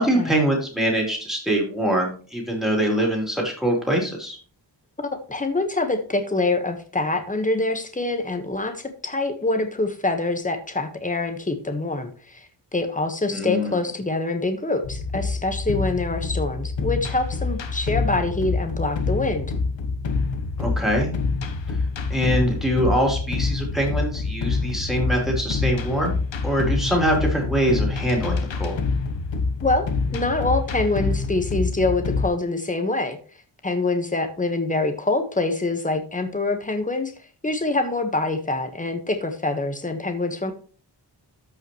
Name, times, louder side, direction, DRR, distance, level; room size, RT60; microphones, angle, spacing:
voice 1, 0.0-4.4 13.3-13.8 20.6-21.1 22.1-26.2 26.4-28.8, equal, ahead, 0 dB, 3.6 m, -23 dB
voice 2, 5.0-19.5 29.6-33.2 33.6-37.1 37.4-40.5, left 2 dB, 20° left, 7 dB, 1.3 m, -25 dB
Taiko Drum Sequence for Looping (The Sacrifice), 14.8-32.3, left 4 dB, 85° left, 1.2 m, -26 dB
13.5 x 5.7 x 3.1 m, 0.40 s
wide cardioid pair, 125°, 43 cm